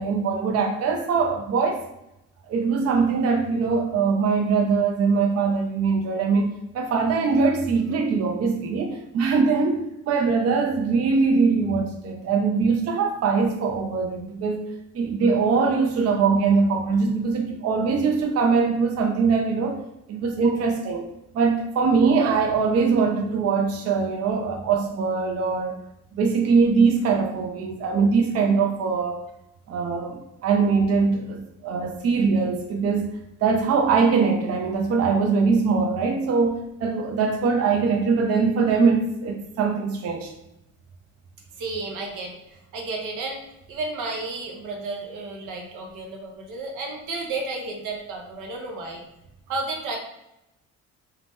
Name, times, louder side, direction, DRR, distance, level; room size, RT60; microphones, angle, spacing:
voice 1, 0.0-1.8 2.5-19.8 20.1-21.1 21.3-25.8 26.2-29.2 29.7-33.1 33.4-40.3, right 5 dB, 55° right, 3 dB, 0.4 m, -22 dB
voice 2, 41.6-49.0 49.5-50.0, right 3 dB, 85° right, 1 dB, 0.7 m, -32 dB
2.8 x 2.0 x 3.3 m, 0.85 s
cardioid pair, 90°, 30 cm